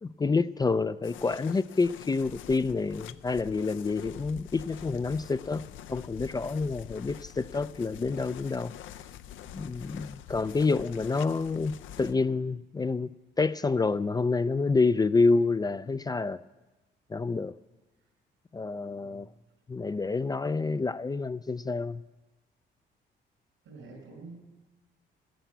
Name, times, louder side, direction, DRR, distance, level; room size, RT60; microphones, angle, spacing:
voice 1, 0.0-8.7 9.5-16.4 17.1-17.5 18.5-19.3 19.7-22.0, left 4 dB, 20° left, 0.3 m, -28 dB
sound 1, 1.0-12.2, left 10 dB, 80° left, 0.5 m, -46 dB
voice 2, 19.0-19.3 23.6-24.4, right 3 dB, 85° right, 5.2 m, -47 dB
12.5 x 10.0 x 8.0 m
cardioid pair, 90°, 20 cm